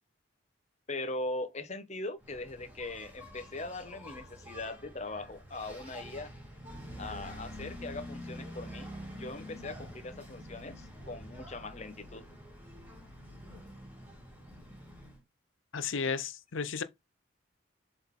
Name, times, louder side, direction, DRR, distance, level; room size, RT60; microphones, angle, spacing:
voice 1, 0.9-6.3 7.0-8.9 9.2-12.3 16.1-16.2, left 2 dB, 35° left, 1.0 m, -40 dB
Engine, 2.2-15.2, equal, 10° right, 2.9 m, -47 dB
voice 2, 15.7-16.8, left 5 dB, 80° left, 0.7 m, -33 dB
7.8 x 3.9 x 3.7 m
head